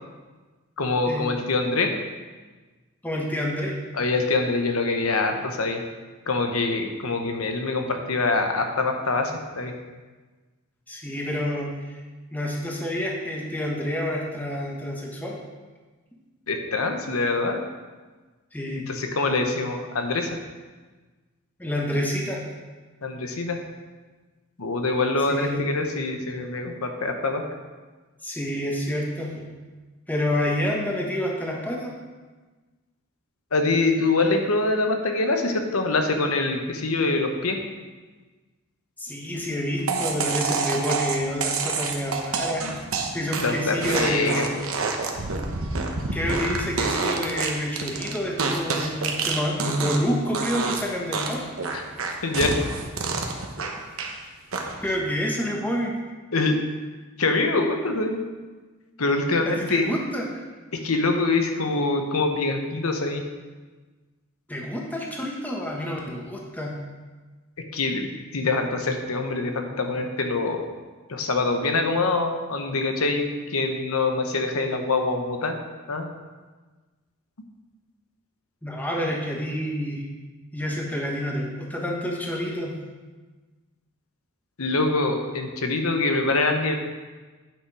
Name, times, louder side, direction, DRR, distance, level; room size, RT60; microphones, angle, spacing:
voice 1, 0.8-1.9 3.9-5.8 6.3-9.7 16.5-17.6 18.7-20.4 23.0-23.6 24.6-27.4 33.5-37.6 43.4-44.5 51.7-51.8 52.2-52.5 56.3-56.6 57.2-58.2 59.0-59.9 60.7-63.2 67.7-70.6 71.1-75.6 75.9-76.1 84.6-86.8, left 3 dB, 90° left, 5 dB, 1.0 m, -24 dB
voice 2, 3.0-3.8 10.9-12.0 12.3-15.4 18.5-18.8 21.6-22.4 25.3-25.6 28.2-29.4 30.1-31.9 39.0-42.7 43.1-44.5 46.1-51.5 54.8-55.9 59.4-60.4 64.5-66.8 78.6-80.0 80.5-82.7, equal, 10° left, -1 dB, 1.1 m, -28 dB
sound 1, 39.9-50.1 50.3-50.8 51.1-54.1 54.5-55.0, right 4 dB, 75° right, 1.0 m, -27 dB
8.8 x 6.1 x 4.8 m, 1.3 s
head